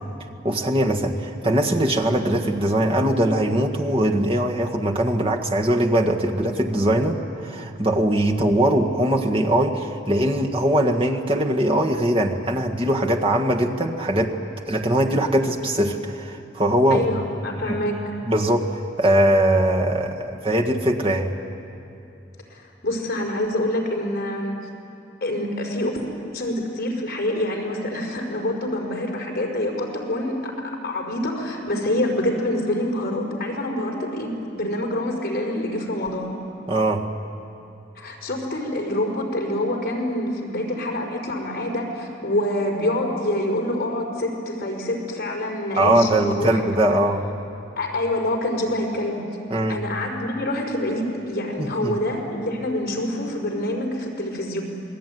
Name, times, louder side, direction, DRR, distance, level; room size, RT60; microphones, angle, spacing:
voice 1, 0.4-14.3 14.7-17.2 17.6-17.8 18.2-21.3 36.7-37.0 45.8-47.2 49.5-49.8 51.6-51.9, right 1 dB, 30° right, 1 dB, 1.8 m, -21 dB
voice 2, 16.9-18.0 22.5-24.6 25.2-26.0 26.3-30.5 30.8-36.3 37.9-46.6 47.8-49.2 49.7-54.6, left 1 dB, 50° left, 0 dB, 5.0 m, -26 dB
28.0 x 20.5 x 9.4 m, 2.8 s
head